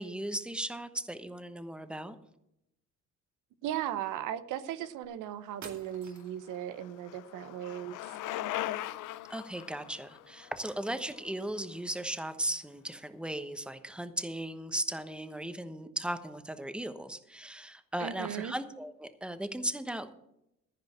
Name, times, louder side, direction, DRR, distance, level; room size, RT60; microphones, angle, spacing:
voice 1, 0.0-2.2 9.3-20.1, right 1 dB, 5° right, 10 dB, 1.1 m, -37 dB
voice 2, 3.6-8.0 18.0-18.5, right 11 dB, 90° right, 12 dB, 0.8 m, -37 dB
sound 1, 5.0-5.1 5.6-6.5, right 5 dB, 70° right, 2.4 m, -48 dB
Bicycle, 6.0-11.9, left 14 dB, 85° left, 0.6 m, -40 dB
14.5 x 5.0 x 8.6 m, 0.81 s
cardioid pair, 90°, 30 cm